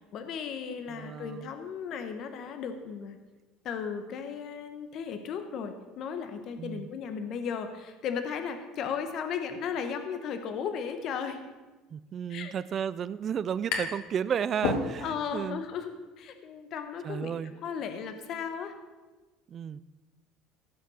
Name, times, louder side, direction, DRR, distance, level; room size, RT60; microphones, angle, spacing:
voice 1, 0.1-3.2 3.6-11.4 12.3-12.5 15.0-18.7, left 6 dB, 45° left, 8 dB, 1.1 m, -35 dB
voice 2, 0.9-1.5 6.6-6.9 11.9-15.6 17.0-17.5 19.5-19.8, right 8 dB, 35° right, 16 dB, 0.3 m, -33 dB
sound 1, 13.2-14.1 14.4-15.3, left 4 dB, 70° left, 2.2 m, -32 dB
15.5 x 5.7 x 6.4 m, 1.2 s
cardioid pair, 145°, 0 cm